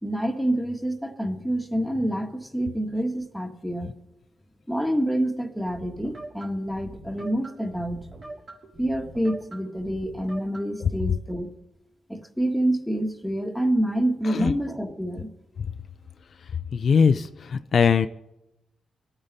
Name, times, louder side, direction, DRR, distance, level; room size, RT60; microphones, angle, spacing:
voice 1, 0.0-3.9 4.7-8.0 8.8-11.5 12.1-15.3, right 1 dB, ahead, 4 dB, 1.5 m, -27 dB
sound 1, 5.7-10.9, right 2 dB, 45° right, 3.4 m, -43 dB
voice 2, 16.7-18.1, left 6 dB, 55° left, 10 dB, 0.4 m, -21 dB
24.0 x 8.9 x 4.1 m, 0.90 s
cardioid pair, 90°, 0 cm